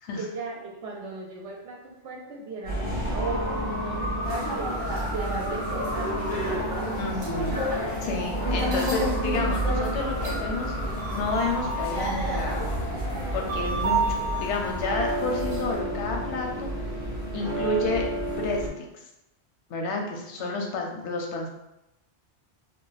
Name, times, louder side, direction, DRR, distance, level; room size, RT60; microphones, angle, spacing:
voice 1, 0.2-6.7 17.3-18.0 20.4-21.0, right 3 dB, 80° right, 0 dB, 1.0 m, -38 dB
sound 1, 2.6-18.7, right 1 dB, 50° left, 1.0 m, -31 dB
sound 2, 4.2-15.8, right 1 dB, 50° right, 1.0 m, -31 dB
voice 2, 7.0-7.6 8.0-10.8 11.1-12.6 13.3-16.7 17.3-18.8 19.7-21.5, left 3 dB, 90° left, 1 dB, 0.9 m, -30 dB
2.4 x 2.2 x 3.9 m, 0.91 s
omnidirectional pair, 1.1 m